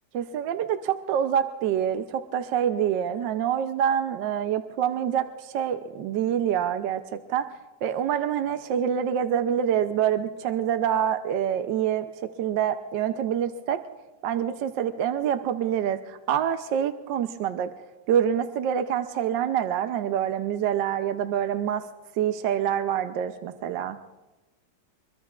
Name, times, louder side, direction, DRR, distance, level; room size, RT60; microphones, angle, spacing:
voice 1, 0.1-7.5 7.8-12.1 12.4-13.8 14.2-17.7 18.1-21.8 22.2-24.0, right 9 dB, 75° right, 8 dB, 1.4 m, -26 dB
23.5 x 23.0 x 2.4 m, 1.1 s
omnidirectional pair, 2.0 m